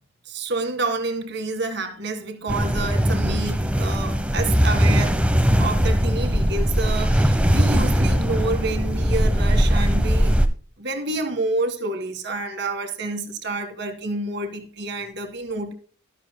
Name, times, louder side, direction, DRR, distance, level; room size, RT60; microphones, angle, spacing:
voice 1, 0.3-5.2 5.6-10.4 10.8-15.7, right 2 dB, 55° right, 1.9 m, -28 dB
sound 1, 2.5-10.5, equal, 5° right, 0.8 m, -20 dB
12.5 x 12.5 x 2.2 m
head